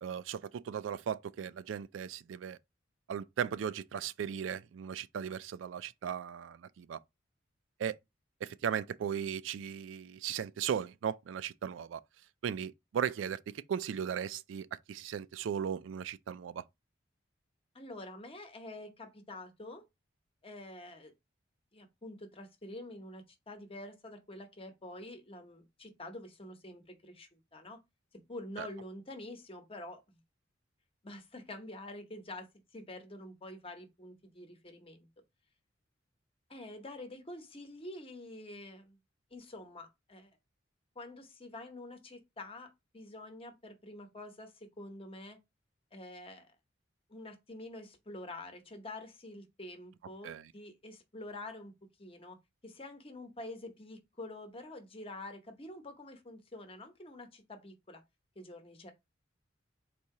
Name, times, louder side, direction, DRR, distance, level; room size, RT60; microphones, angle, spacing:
voice 1, 0.0-2.6 3.1-7.0 7.8-8.0 8.4-12.0 12.4-16.6 28.6-28.7 50.2-50.5, right 8 dB, 80° right, 0.3 m, -37 dB
voice 2, 17.7-19.8 20.4-21.1 21.7-27.8 28.3-30.2 31.0-35.1 36.5-39.0 39.3-40.3 40.9-45.4 45.9-46.5 47.1-51.7 52.0-52.4 52.6-58.0 58.4-58.9, left 2 dB, 30° left, 0.9 m, -47 dB
4.1 x 2.7 x 4.7 m
head